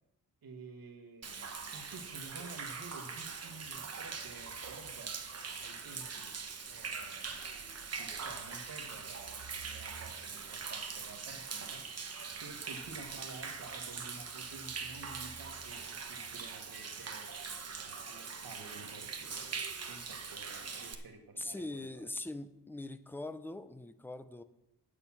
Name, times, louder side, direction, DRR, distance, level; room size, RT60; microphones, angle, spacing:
voice 1, 0.4-1.4 1.7-5.2 5.6-6.4 6.7-7.5 8.0-12.1 12.4-17.3 17.8-19.6 19.9-22.1, right 3 dB, 70° right, 4 dB, 1.5 m, -51 dB
Human voice / Rain / Stream, 1.2-20.9, right 5 dB, 40° right, 1.0 m, -42 dB
voice 2, 21.4-24.4, left 2 dB, 5° left, 11 dB, 0.5 m, -42 dB
10.0 x 6.8 x 7.1 m, 0.90 s
wide cardioid pair, 180°, 37 cm